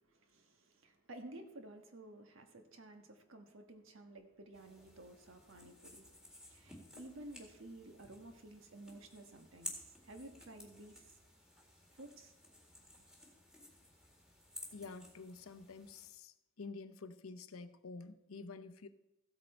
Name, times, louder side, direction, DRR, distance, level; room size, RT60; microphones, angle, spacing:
voice 1, 0.1-6.1 6.4-11.0 12.0-12.3, right 1 dB, 65° right, 1.4 m, -53 dB
sound 1, 4.5-16.1, left 1 dB, 5° right, 1.9 m, -54 dB
voice 2, 14.7-18.9, left 4 dB, 90° left, 0.7 m, -49 dB
14.5 x 8.3 x 4.4 m
head